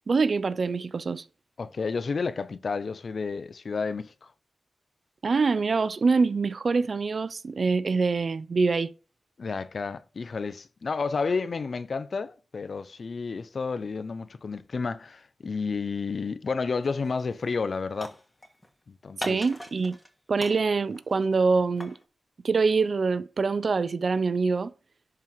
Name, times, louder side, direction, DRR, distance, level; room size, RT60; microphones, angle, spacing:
voice 1, 0.1-1.2 5.2-8.9 19.2-20.0 20.3-22.0 22.4-24.7, right 4 dB, 65° right, 0.7 m, -25 dB
voice 2, 1.6-4.3 9.4-18.1 18.9-19.4, left 4 dB, 65° left, 0.8 m, -31 dB
sound 1, 16.8-17.1 17.4-18.7 19.2-20.1 20.4-22.0, left 1 dB, 15° left, 2.3 m, -40 dB
11.0 x 4.7 x 4.7 m
cardioid pair, 50°, 0 cm